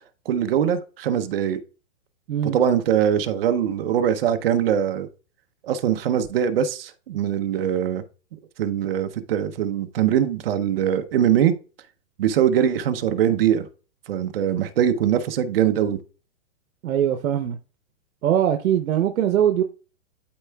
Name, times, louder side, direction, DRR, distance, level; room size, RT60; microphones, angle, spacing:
voice 1, 0.3-1.6 2.5-5.1 5.6-8.0 8.6-11.5 12.2-13.7 14.1-16.0, right 9 dB, 45° right, 0.7 m, -22 dB
voice 2, 16.8-17.6 18.2-19.6, right 10 dB, 90° right, 0.8 m, -21 dB
12.0 x 4.5 x 2.2 m
hypercardioid pair, 165°, 40 cm